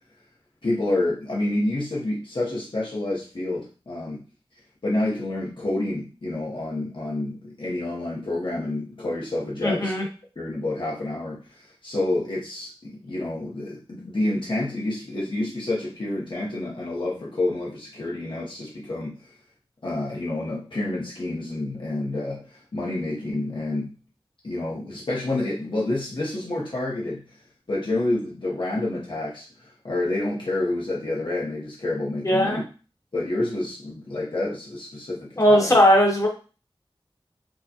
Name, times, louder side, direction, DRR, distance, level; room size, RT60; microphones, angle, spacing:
voice 1, 0.6-4.2 4.8-9.9 10.4-19.3 19.8-23.9 24.4-27.4 27.7-32.7 33.1-35.7, left 2 dB, 60° left, -5 dB, 0.8 m, -28 dB
voice 2, 9.6-10.0 32.2-32.6 35.4-36.3, equal, 35° left, -1 dB, 1.1 m, -18 dB
4.6 x 2.1 x 2.8 m, 0.35 s
wide cardioid pair, 65°, 10 cm